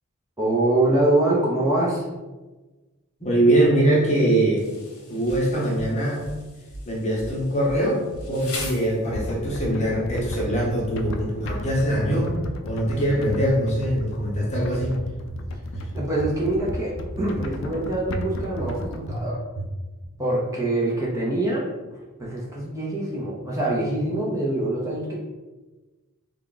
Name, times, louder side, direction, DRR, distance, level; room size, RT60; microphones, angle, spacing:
voice 1, 0.4-2.0 15.9-19.4 20.2-21.6 21.9-25.2, right 2 dB, 15° right, -5 dB, 0.6 m, -24 dB
voice 2, 3.2-4.7 5.1-6.2 6.9-8.0 8.3-12.3 12.6-15.0, right 1 dB, 30° left, -3 dB, 0.8 m, -22 dB
Insect, 4.6-9.5, left 3 dB, 80° left, 0.9 m, -41 dB
sound 1, 5.3-5.9 6.2-6.9 7.2-7.9 8.1-8.8 9.1-9.8 10.0-10.7 11.0-11.7 11.9-12.6 12.9-13.6 13.8-14.5 14.8-15.4 15.7-16.4 16.7-17.3 17.6-17.8 18.1-18.8 19.1-19.2 19.6-20.1, right 2 dB, 75° right, 0.5 m, -36 dB
sound 2, 9.1-19.2, left 2 dB, 60° left, 0.3 m, -35 dB
3.4 x 2.3 x 3.8 m, 1.2 s
head